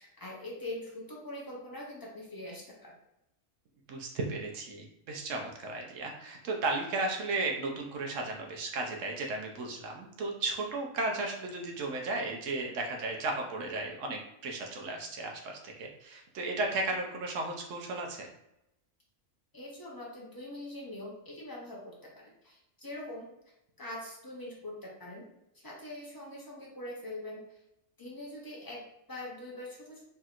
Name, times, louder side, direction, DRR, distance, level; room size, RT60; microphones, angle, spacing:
voice 1, 0.0-2.9 19.5-23.3 23.8-25.3 25.5-27.4 28.0-30.0, left 1 dB, 35° left, -3 dB, 0.3 m, -43 dB
voice 2, 3.9-18.3, right 2 dB, 75° right, 1 dB, 1.0 m, -35 dB
3.1 x 2.8 x 2.4 m, 0.85 s
omnidirectional pair, 1.3 m